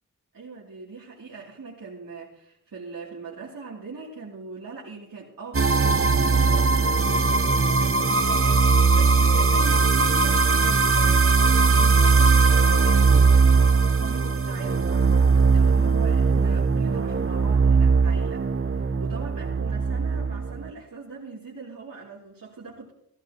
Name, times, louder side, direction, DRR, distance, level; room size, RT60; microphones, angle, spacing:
voice 1, 0.3-18.6 18.8-22.9, right 4 dB, 90° right, -6 dB, 3.0 m, -40 dB
sound 1, 5.5-20.7, right 4 dB, 40° right, 0.9 m, -20 dB
16.0 x 16.0 x 3.0 m, 0.76 s
wide cardioid pair, 55°, 33 cm